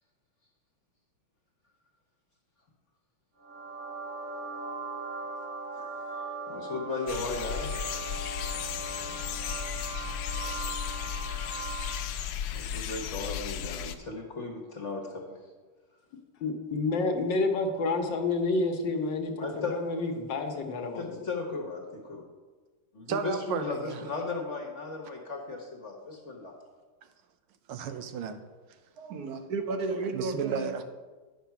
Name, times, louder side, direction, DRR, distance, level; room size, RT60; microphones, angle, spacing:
sound 1, 3.4-12.2, right 3 dB, 35° right, 1.6 m, -39 dB
voice 1, 5.7-7.8 10.4-10.7 12.1-15.4 19.4-19.8 21.0-22.2 22.9-26.5, left 4 dB, 40° left, 1 dB, 1.2 m, -36 dB
sound 2, 7.1-14.0, left 8 dB, 90° left, 1.5 m, -35 dB
voice 2, 16.4-21.2, left 3 dB, 65° left, 4 dB, 1.5 m, -29 dB
voice 3, 23.1-24.0 27.7-28.4 30.1-30.8, right 6 dB, 90° right, 8 dB, 1.6 m, -33 dB
voice 4, 29.0-30.7, right 3 dB, 55° right, 5 dB, 1.2 m, -33 dB
9.8 x 6.1 x 5.7 m, 1.3 s
omnidirectional pair, 2.3 m